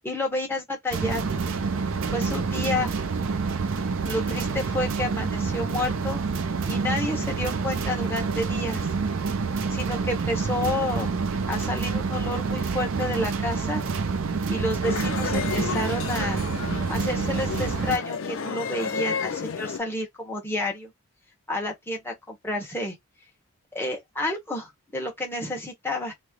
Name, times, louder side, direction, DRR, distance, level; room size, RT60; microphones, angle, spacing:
voice 1, 0.0-1.5 2.1-2.9 4.0-6.2 6.6-8.9 9.7-11.1 11.5-13.8 14.5-16.4 16.9-20.9 21.5-23.0 23.7-26.1, left 1 dB, 10° left, 1.0 m, -30 dB
sound 1, 0.9-18.0, right 4 dB, 65° right, 0.5 m, -27 dB
sound 2, 14.8-19.8, left 5 dB, 60° left, 0.5 m, -31 dB
3.0 x 2.0 x 3.6 m
head